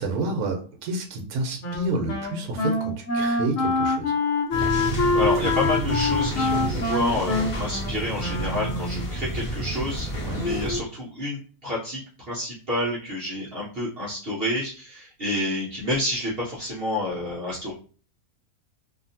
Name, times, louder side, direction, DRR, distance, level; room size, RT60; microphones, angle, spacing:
voice 1, 0.0-4.1 10.2-10.5, right 3 dB, 75° right, 5 dB, 1.2 m, -29 dB
Wind instrument woodwind instrument, 1.6-9.0, left 3 dB, 65° left, 1.1 m, -25 dB
sound 1, 4.5-10.8, right 1 dB, 35° left, 1.0 m, -30 dB
voice 2, 4.6-17.7, left 1 dB, 45° right, -6 dB, 0.9 m, -29 dB
2.8 x 2.5 x 2.7 m, 0.40 s
omnidirectional pair, 1.6 m